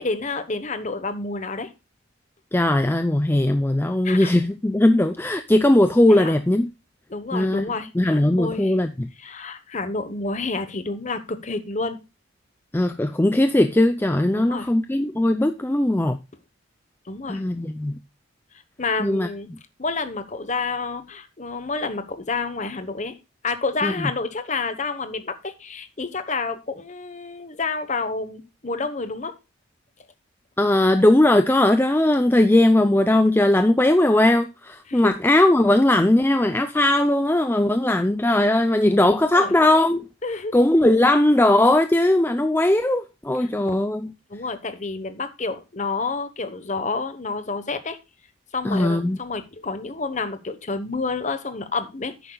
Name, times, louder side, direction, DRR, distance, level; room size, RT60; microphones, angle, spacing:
voice 1, 0.0-1.7 4.0-4.3 6.1-6.3 7.1-8.7 9.2-12.0 14.3-14.7 17.1-17.4 18.8-19.5 19.8-23.2 23.4-29.3 34.9-35.1 39.1-39.5 40.2-40.5 43.4-43.5 44.3-48.0 48.5-52.3, left 3 dB, 35° left, 1.0 m, -29 dB
voice 2, 2.5-6.7 7.3-7.7 8.0-9.1 12.7-16.2 17.3-18.0 19.0-19.3 23.8-23.9 30.6-40.0 40.5-44.1 48.6-49.2, left 1 dB, 10° left, 0.4 m, -19 dB
11.0 x 9.2 x 2.3 m
head